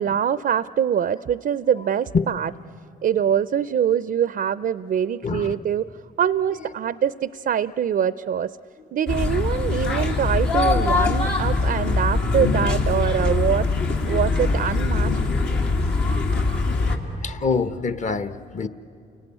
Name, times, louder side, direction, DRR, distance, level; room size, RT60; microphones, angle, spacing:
voice 1, 0.0-2.5 3.0-5.9 6.2-8.5 8.9-13.7 14.1-15.2, right 9 dB, 55° right, 16 dB, 0.5 m, -24 dB
voice 2, 5.2-5.6 6.6-6.7 8.8-8.9 11.7-11.9 15.8-16.1 16.7-16.9 17.2-18.7, left 4 dB, 40° left, 13 dB, 1.1 m, -26 dB
sound 1, 9.1-17.0, left 3 dB, 70° left, 2.5 m, -22 dB
29.0 x 18.0 x 9.8 m, 2.7 s
supercardioid pair, 60°, 18 cm